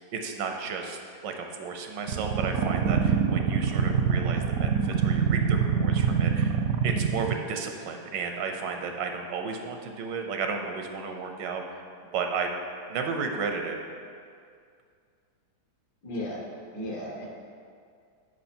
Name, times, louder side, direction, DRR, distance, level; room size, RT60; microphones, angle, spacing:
voice 1, 0.1-11.8 12.1-12.5 12.9-13.8, right 5 dB, 90° right, 4 dB, 1.4 m, -33 dB
sound 1, 2.1-7.4, right 7 dB, 70° right, 0.8 m, -24 dB
voice 2, 16.0-16.5 16.7-17.3, left 1 dB, 70° left, -2 dB, 1.9 m, -34 dB
9.6 x 5.0 x 4.4 m, 2.3 s
omnidirectional pair, 1.9 m